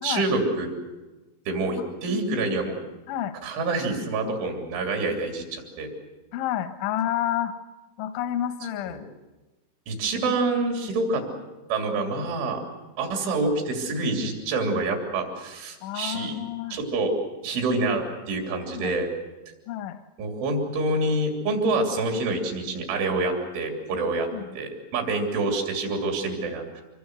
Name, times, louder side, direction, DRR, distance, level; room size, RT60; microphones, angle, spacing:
voice 1, 0.0-0.7 1.5-2.8 3.4-5.9 8.9-9.0 9.9-11.2 11.7-12.6 13.0-16.4 16.7-17.1 17.4-19.1 20.2-24.3 24.5-26.8, right 2 dB, 85° right, 3 dB, 5.7 m, -27 dB
voice 2, 1.8-2.2 3.1-3.4 6.3-7.6 8.0-9.1 15.8-16.8 18.6-18.9 19.7-20.0 24.3-24.6, left 11 dB, 80° left, 10 dB, 3.4 m, -30 dB
25.5 x 21.0 x 8.1 m, 1.2 s
omnidirectional pair, 5.3 m